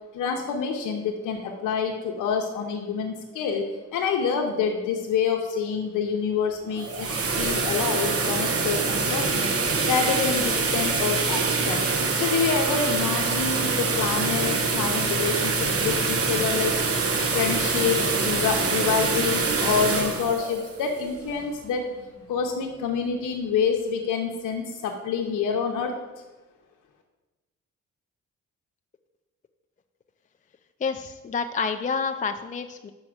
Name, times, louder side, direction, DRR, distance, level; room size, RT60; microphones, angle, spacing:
voice 1, 0.1-9.5 9.8-11.8 12.1-16.8 17.3-21.9 22.3-26.0, left 6 dB, 90° left, 1 dB, 0.7 m, -27 dB
sound 1, 6.6-21.6, right 4 dB, 50° right, 1.1 m, -25 dB
voice 2, 30.8-32.9, left 5 dB, 25° left, 7 dB, 0.4 m, -28 dB
5.3 x 4.7 x 6.2 m, 1.2 s
cardioid pair, 65°, 31 cm